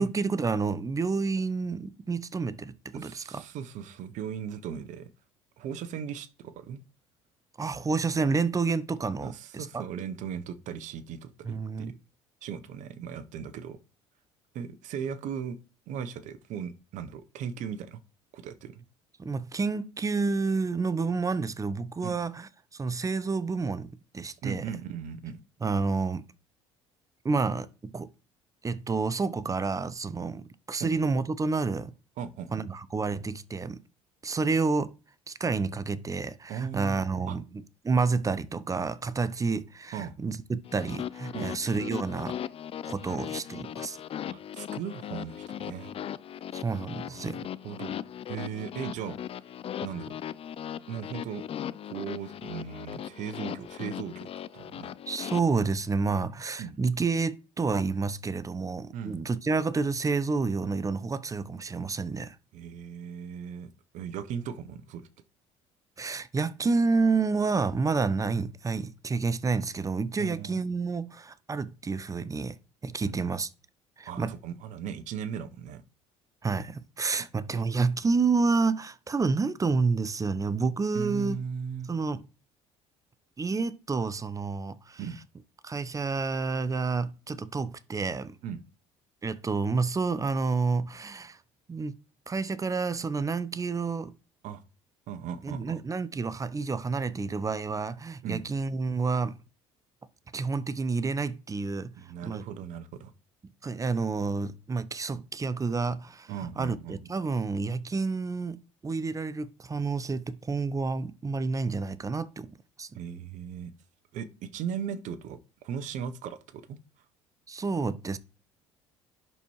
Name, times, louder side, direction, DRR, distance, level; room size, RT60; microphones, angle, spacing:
voice 1, 0.0-3.4 7.6-9.9 11.4-11.9 19.2-24.7 25.6-26.2 27.2-28.1 28.6-31.9 32.5-33.8 34.2-34.9 35.3-37.4 37.8-42.4 42.8-44.0 46.5-47.5 55.1-62.4 66.0-72.6 72.8-73.5 74.0-74.3 76.4-81.4 81.9-82.2 83.4-85.0 85.6-88.4 89.2-91.4 91.7-92.0 92.3-94.1 95.4-99.4 100.3-101.9 102.2-102.4 103.6-112.5 112.8-112.9 117.5-118.2, right 4 dB, 25° right, 0.7 m, -29 dB
voice 2, 2.9-5.1 5.6-6.8 9.2-11.9 12.4-13.8 14.5-15.6 15.9-18.0 18.3-18.8 22.0-22.2 24.4-25.4 30.8-30.9 32.2-32.6 36.5-37.4 39.9-40.1 41.3-41.6 43.1-43.3 44.2-45.9 47.0-47.3 47.6-47.9 48.3-49.2 49.8-50.2 50.9-51.5 51.8-54.9 56.6-56.8 58.9-59.2 62.5-65.1 70.2-70.6 73.0-73.3 74.1-75.8 77.5-77.6 80.9-81.9 85.0-85.2 88.4-88.6 94.4-94.6 95.1-95.8 98.2-98.4 102.0-103.1 106.3-107.1 112.9-113.7 114.1-116.8, right 8 dB, 60° right, 0.9 m, -38 dB
sound 1, 40.7-55.4, left 10 dB, 45° left, 0.5 m, -38 dB
11.0 x 4.3 x 3.1 m
hypercardioid pair, 65°, 14 cm